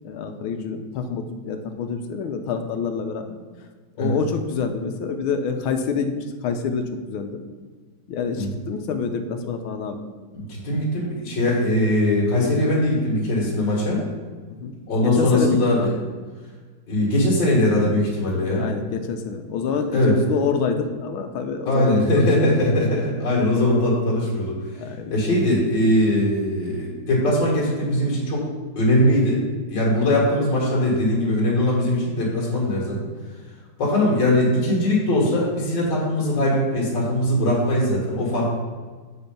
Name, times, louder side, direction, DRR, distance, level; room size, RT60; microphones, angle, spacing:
voice 1, 0.0-3.4 4.0-6.1 6.4-7.4 8.1-10.0 14.6-14.8 15.0-16.0 18.5-22.6 23.4-23.5 24.8-25.1, left 5 dB, 85° left, 7 dB, 1.5 m, -27 dB
voice 2, 10.3-14.0 14.9-15.9 16.9-18.7 19.9-20.2 21.7-24.6 25.1-28.4 28.8-33.1 33.8-38.5, left 1 dB, 65° left, -5 dB, 2.5 m, -21 dB
7.0 x 4.3 x 5.1 m, 1.4 s
omnidirectional pair, 2.2 m